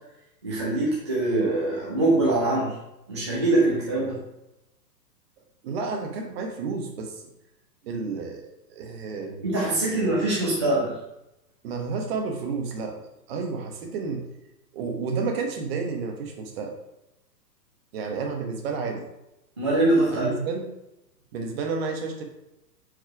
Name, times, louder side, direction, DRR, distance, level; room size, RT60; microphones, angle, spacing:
voice 1, 0.4-2.8 3.1-4.2 9.4-11.0 19.6-20.3, right 2 dB, 20° right, -6 dB, 0.4 m, -23 dB
voice 2, 5.6-7.3 7.8-9.5 11.6-13.0 13.3-14.2 14.7-16.7 17.9-19.0 20.1-20.7 21.3-22.2, right 4 dB, 35° right, 3 dB, 1.1 m, -31 dB
4.6 x 4.5 x 4.7 m, 0.90 s
hypercardioid pair, 150°, 49 cm